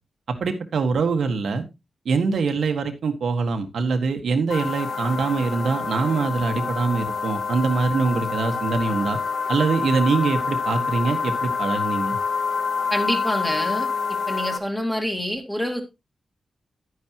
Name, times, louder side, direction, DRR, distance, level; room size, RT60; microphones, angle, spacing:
voice 1, 0.4-1.6 2.1-9.2 9.5-12.2, right 4 dB, 80° right, 5 dB, 1.8 m, -23 dB
sound 1, 4.5-14.6, left 5 dB, 60° left, 2.0 m, -27 dB
voice 2, 12.9-15.8, equal, 5° left, 3 dB, 2.3 m, -27 dB
12.0 x 9.7 x 3.1 m, 0.24 s
wide cardioid pair, 160°, 0 cm